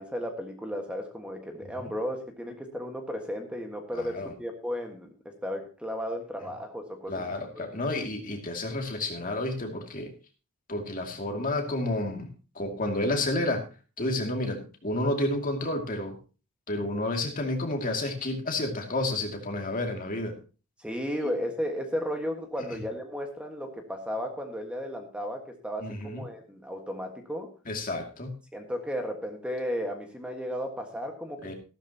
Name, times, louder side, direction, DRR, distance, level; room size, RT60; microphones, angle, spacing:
voice 1, 0.0-7.2 7.5-7.7 7.9-8.1 20.8-27.5 28.5-31.5, equal, 5° right, 3 dB, 1.6 m, -34 dB
voice 2, 3.9-4.3 7.1-10.1 10.7-12.3 12.5-13.6 14.0-16.1 16.7-20.4 25.8-26.2 27.7-28.3 31.4-31.5, left 2 dB, 40° left, 3 dB, 2.4 m, -30 dB
15.0 x 12.5 x 2.9 m, 0.34 s
head